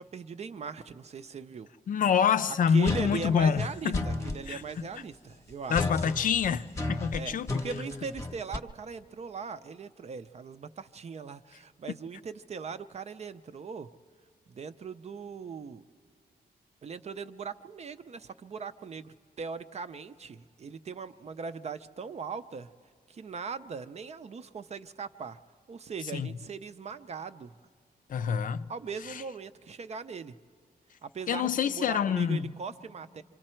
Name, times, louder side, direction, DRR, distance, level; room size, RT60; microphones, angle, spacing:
voice 1, 0.0-1.7 2.5-5.9 7.1-13.9 14.5-15.8 16.8-22.7 23.1-25.4 25.7-27.6 28.7-30.3 31.0-33.2, right 5 dB, 45° right, 0.5 m, -40 dB
voice 2, 1.9-4.0 4.5-4.6 5.7-7.6 26.1-26.3 28.1-28.7 31.3-32.5, left 7 dB, 60° left, 0.4 m, -26 dB
sound 1, 2.9-4.4 5.7-8.6, left 2 dB, 20° left, 0.8 m, -33 dB
26.5 x 25.5 x 4.4 m
wide cardioid pair, 135°, 16 cm